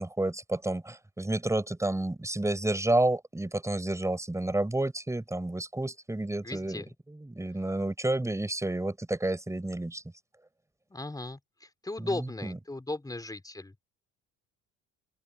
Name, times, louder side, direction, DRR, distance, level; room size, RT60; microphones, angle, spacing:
voice 1, 0.0-10.0 12.0-12.6, right 1 dB, 10° right, 6.6 m, -30 dB
voice 2, 6.4-6.9 10.9-13.8, left 2 dB, 10° left, 5.1 m, -37 dB
open air
cardioid pair, 95°, 32 cm